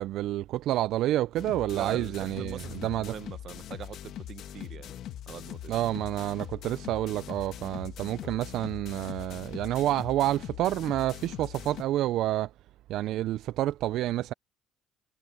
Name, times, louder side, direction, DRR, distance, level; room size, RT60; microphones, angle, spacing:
voice 1, 0.0-3.1 5.7-12.5 12.9-14.3, right 14 dB, 70° right, 0.3 m, -29 dB
sound 1, 1.3-11.8, left 12 dB, 70° left, 1.6 m, -42 dB
voice 2, 1.7-4.9 5.3-5.7, right 9 dB, 55° right, 1.0 m, -42 dB
sound 2, 2.6-3.8 4.9-5.7 6.6-7.3 8.2-8.9, left 7 dB, 50° left, 2.6 m, -52 dB
cardioid pair, 95°, 0 cm